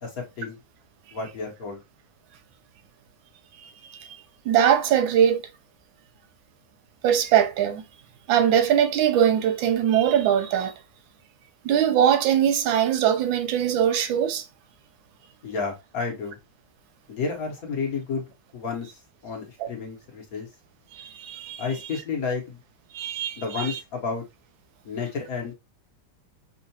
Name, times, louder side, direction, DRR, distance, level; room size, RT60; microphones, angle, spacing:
voice 1, 0.0-0.6 1.1-1.8 15.4-16.4 17.1-18.2 18.5-20.5 21.6-22.6 23.4-24.2 24.8-25.5, left 5 dB, 55° left, 1.3 m, -31 dB
voice 2, 3.6-4.2 4.4-5.4 7.0-7.8 8.3-10.7 11.6-14.4 19.6-19.7 20.9-21.7 22.9-23.8, right 9 dB, 85° right, 1.4 m, -22 dB
5.3 x 2.4 x 2.7 m
omnidirectional pair, 2.1 m